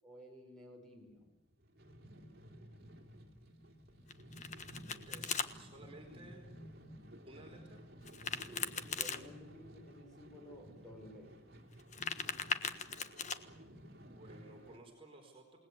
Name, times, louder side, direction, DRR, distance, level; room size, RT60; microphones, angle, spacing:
voice 1, 0.0-1.3 8.5-11.4, equal, 5° left, 1 dB, 6.2 m, -54 dB
sound 1, 1.5-14.8, equal, 50° right, 3.3 m, -54 dB
Domestic sounds home sounds, 4.1-5.5 8.0-9.2 11.7-13.4, left 6 dB, 35° left, 1.4 m, -39 dB
voice 2, 5.1-6.5 7.2-7.8 13.6-15.6, right 2 dB, 30° right, 1 dB, 4.6 m, -56 dB
28.5 x 19.5 x 8.4 m, 1.1 s
head